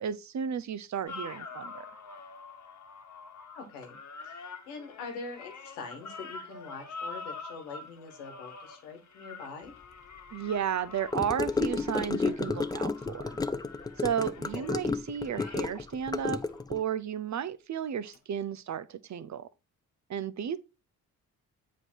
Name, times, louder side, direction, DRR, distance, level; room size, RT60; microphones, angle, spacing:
voice 1, 0.0-1.9 10.3-13.4 14.0-16.4 16.7-19.5 20.1-20.6, right 8 dB, 40° right, 0.6 m, -33 dB
sound 1, 1.1-16.6 18.1-18.2, left 3 dB, 40° left, 1.2 m, -46 dB
voice 2, 3.5-4.0 4.2-9.7 14.5-14.7, left 4 dB, 90° left, 1.4 m, -43 dB
Gurgling / Car passing by / Sink (filling or washing), 11.1-16.8, left 3 dB, 10° left, 0.3 m, -31 dB
7.7 x 3.1 x 4.4 m
hypercardioid pair, 45°, 43 cm